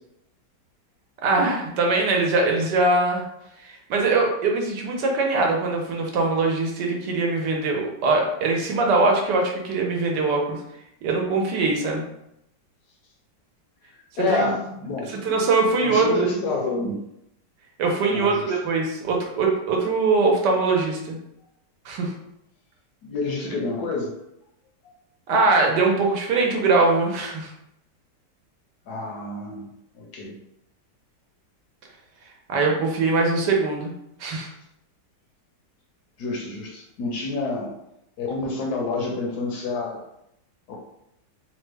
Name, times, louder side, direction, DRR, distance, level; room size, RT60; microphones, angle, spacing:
voice 1, 1.2-3.2 3.6-10.6 11.0-12.0 14.2-14.5 15.1-16.3 17.8-21.2 21.8-22.1 25.3-27.5 32.5-33.9 34.2-34.5, right 3 dB, 75° right, 1 dB, 1.3 m, -22 dB
voice 2, 14.2-15.4 15.8-17.0 18.1-18.6 23.0-24.1 28.9-29.7 29.9-30.4 36.2-37.7 38.2-40.0 40.7-40.8, left 3 dB, 70° left, 0 dB, 1.1 m, -28 dB
3.4 x 2.1 x 3.2 m, 0.80 s
omnidirectional pair, 1.9 m